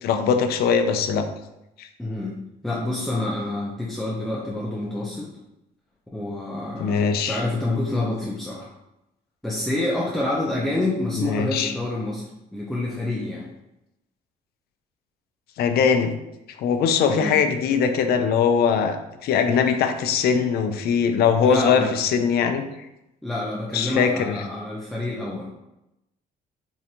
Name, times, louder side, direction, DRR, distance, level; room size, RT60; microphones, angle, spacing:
voice 1, 0.0-1.2 1.8-1.9 6.8-7.4 11.2-11.7 15.6-16.1 16.6-22.6 23.7-24.3, left 6 dB, 65° left, 7 dB, 0.5 m, -21 dB
voice 2, 2.0-2.3 2.6-5.3 6.1-8.7 9.4-13.5 17.1-17.4 21.4-21.9 23.2-25.5, left 2 dB, ahead, -5 dB, 0.6 m, -27 dB
4.7 x 2.5 x 2.8 m, 0.89 s
cardioid pair, 110°, 17 cm